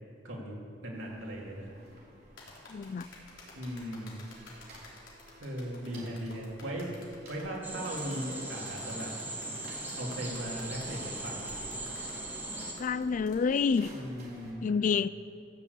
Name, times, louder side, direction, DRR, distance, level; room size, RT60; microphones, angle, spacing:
voice 1, 0.2-0.6 0.8-1.7 3.5-4.3 5.4-6.9 7.3-9.1 10.0-11.6 13.9-14.6, equal, 90° right, -3 dB, 3.0 m, -38 dB
sound 1, 0.9-14.5, right 1 dB, 55° right, 3.7 m, -55 dB
sound 2, 2.4-13.4, left 3 dB, 85° left, 3.5 m, -52 dB
voice 2, 2.7-3.1 12.8-13.9 14.6-15.1, left 5 dB, 40° left, 16 dB, 0.3 m, -28 dB
sound 3, 7.6-12.7, right 2 dB, 10° right, 2.2 m, -39 dB
15.0 x 6.9 x 8.3 m, 2.6 s
head